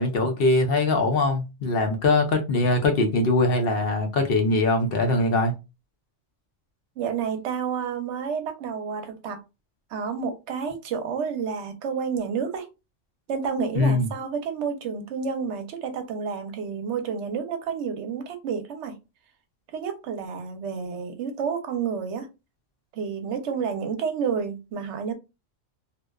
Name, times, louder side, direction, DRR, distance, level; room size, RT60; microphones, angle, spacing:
voice 1, 0.0-5.5 13.8-14.1, left 2 dB, 60° left, 0.7 m, -22 dB
voice 2, 7.0-9.4 9.9-12.7 13.3-18.9 19.7-22.3 22.9-25.1, right 6 dB, 70° right, 0.9 m, -30 dB
2.7 x 2.1 x 2.2 m
omnidirectional pair, 1.3 m